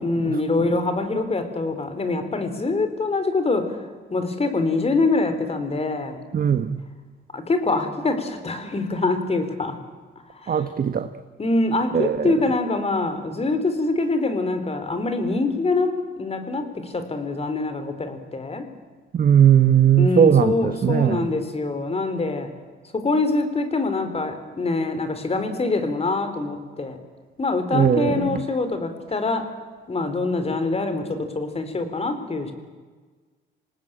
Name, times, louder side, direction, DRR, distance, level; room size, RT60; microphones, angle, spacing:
voice 1, 0.0-3.8 4.1-6.2 7.3-9.8 10.4-10.6 11.4-18.7 20.0-22.5 22.9-27.0 27.4-29.5 29.9-32.5, left 3 dB, 30° left, 9 dB, 4.0 m, -24 dB
voice 2, 6.3-6.8 10.5-11.1 11.9-12.3 19.1-21.3 27.7-28.4, right 9 dB, 45° right, 9 dB, 1.3 m, -18 dB
27.0 x 19.0 x 9.0 m, 1.4 s
cardioid pair, 90°, 20 cm